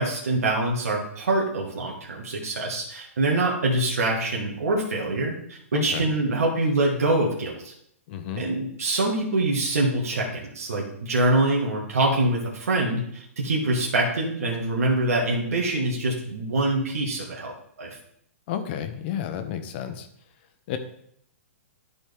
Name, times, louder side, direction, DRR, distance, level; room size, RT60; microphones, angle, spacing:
voice 1, 0.0-7.7 8.4-17.5 17.8-18.0, right 2 dB, 85° right, -3 dB, 1.8 m, -25 dB
voice 2, 5.7-6.0 8.1-8.5 18.5-20.1 20.7-20.8, left 9 dB, 45° left, 8 dB, 1.0 m, -31 dB
12.5 x 4.2 x 3.5 m, 0.69 s
hypercardioid pair, 140°, 8 cm